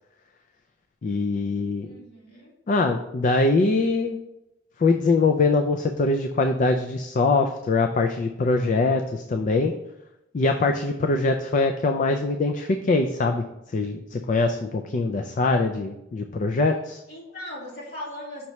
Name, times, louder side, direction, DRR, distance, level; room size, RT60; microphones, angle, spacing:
voice 1, 1.0-1.9 2.7-4.2 4.8-9.7 10.3-13.4 13.7-17.0, left 3 dB, 45° left, 5 dB, 0.4 m, -23 dB
voice 2, 1.8-2.5 17.1-18.5, left 1 dB, 60° left, -5 dB, 2.4 m, -38 dB
5.8 x 3.1 x 5.4 m, 0.87 s
head